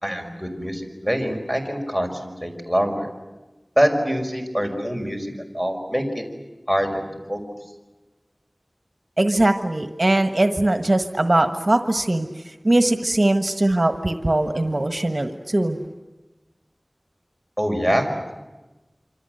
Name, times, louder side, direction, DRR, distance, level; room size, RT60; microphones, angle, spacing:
voice 1, 0.0-3.1 3.8-6.2 6.7-7.4 17.6-18.1, equal, 10° left, 4 dB, 5.4 m, -24 dB
voice 2, 9.2-15.8, right 1 dB, 55° right, 7 dB, 1.4 m, -21 dB
26.5 x 26.5 x 7.9 m, 1.1 s
wide cardioid pair, 40°, 0 cm